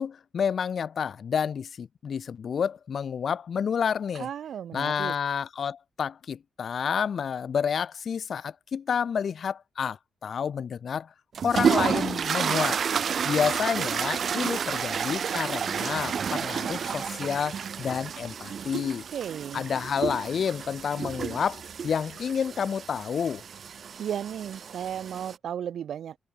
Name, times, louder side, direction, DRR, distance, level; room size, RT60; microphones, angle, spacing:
voice 1, 0.0-4.3 4.7-11.1 11.4-12.8 13.2-19.0 19.5-23.4, left 7 dB, 45° left, 1.2 m, -29 dB
voice 2, 4.1-5.1 18.9-19.6 24.0-26.2, right 9 dB, 65° right, 2.4 m, -34 dB
sound 1, 11.3-25.4, right 7 dB, 45° right, 0.6 m, -30 dB
wide cardioid pair, 160°, 0 cm